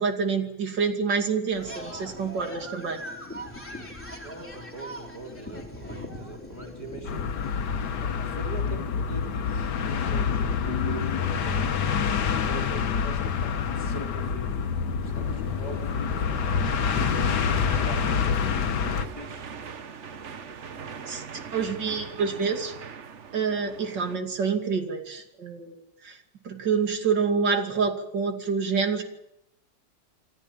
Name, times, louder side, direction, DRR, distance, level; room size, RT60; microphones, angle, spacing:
voice 1, 0.0-3.0 21.1-21.2 21.5-22.7 23.3-26.2 26.4-29.0, right 5 dB, 70° right, 5 dB, 3.2 m, -27 dB
sound 1, 1.5-7.9, equal, 5° left, 3.4 m, -41 dB
voice 2, 4.2-7.4 8.0-12.2 12.4-14.7 15.0-16.2 16.7-19.5, right 2 dB, 20° left, 2 dB, 4.0 m, -42 dB
sound 2, 7.0-19.1, left 6 dB, 65° left, 1.7 m, -27 dB
sound 3, 15.0-24.2, right 6 dB, 45° right, 1.2 m, -40 dB
27.0 x 13.5 x 9.1 m, 0.84 s
omnidirectional pair, 2.0 m